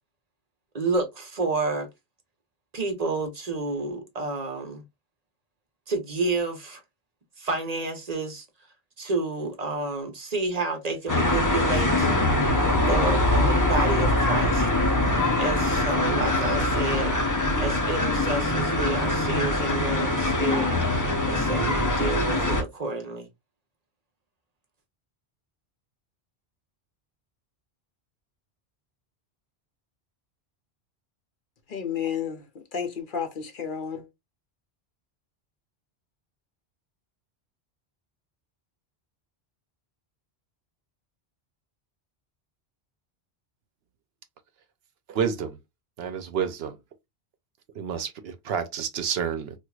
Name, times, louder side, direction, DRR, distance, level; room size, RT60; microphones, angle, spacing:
voice 1, 0.7-1.9 2.7-4.8 5.9-6.8 7.4-8.4 9.0-12.1 12.9-14.7 15.4-17.1 17.6-23.3, right 3 dB, 40° right, 0.9 m, -30 dB
sound 1, 11.1-22.6, left 2 dB, 20° left, 0.6 m, -23 dB
voice 2, 31.7-32.4 32.7-34.1, left 7 dB, 55° left, 0.8 m, -31 dB
voice 3, 45.1-45.5 46.0-46.8 47.8-49.5, right 7 dB, 70° right, 0.8 m, -29 dB
4.5 x 2.4 x 2.3 m
omnidirectional pair, 1.1 m